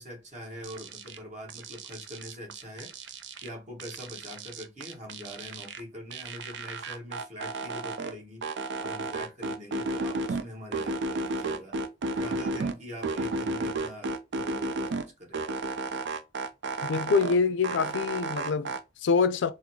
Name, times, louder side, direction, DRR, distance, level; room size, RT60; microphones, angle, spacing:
voice 1, 0.0-2.9 3.4-8.4 8.8-11.8 12.1-15.4, equal, 40° right, 1.5 m, -43 dB
sound 1, 0.6-1.2 1.5-3.5 3.8-5.8 6.1-8.1 8.4-10.4 10.7-12.7 13.0-15.0 15.3-17.4 17.6-18.8, right 2 dB, 65° right, 0.5 m, -33 dB
voice 2, 16.9-19.5, left 5 dB, 75° left, 0.4 m, -25 dB
3.9 x 2.0 x 2.8 m
head